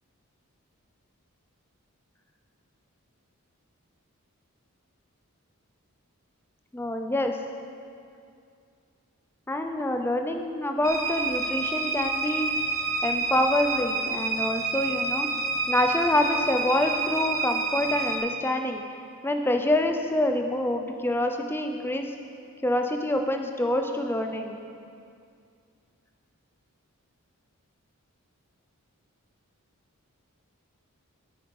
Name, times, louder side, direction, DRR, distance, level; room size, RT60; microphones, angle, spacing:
voice 1, 6.7-7.4 9.5-12.5 13.0-15.3 15.7-18.8 19.2-22.1 22.6-24.6, left 1 dB, 10° left, 4 dB, 0.5 m, -26 dB
sound 1, 10.8-18.2, right 3 dB, 75° right, 1.4 m, -29 dB
8.9 x 8.5 x 4.8 m, 2.4 s
head